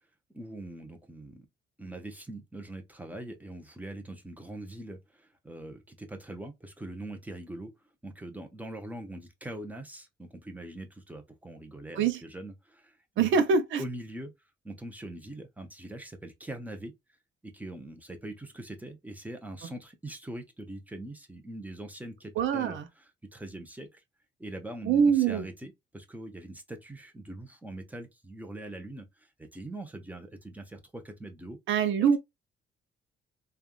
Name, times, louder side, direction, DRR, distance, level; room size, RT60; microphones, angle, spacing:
voice 1, 0.3-1.5 1.8-7.7 8.0-13.3 13.8-14.3 14.6-16.9 17.4-22.8 23.3-24.0 24.4-31.6 32.0-32.1, right 1 dB, 10° right, 0.9 m, -42 dB
voice 2, 13.2-13.8 22.4-22.9 24.8-25.5 31.7-32.2, right 6 dB, 75° right, 0.7 m, -24 dB
3.4 x 2.4 x 2.3 m
cardioid pair, 90°, 20 cm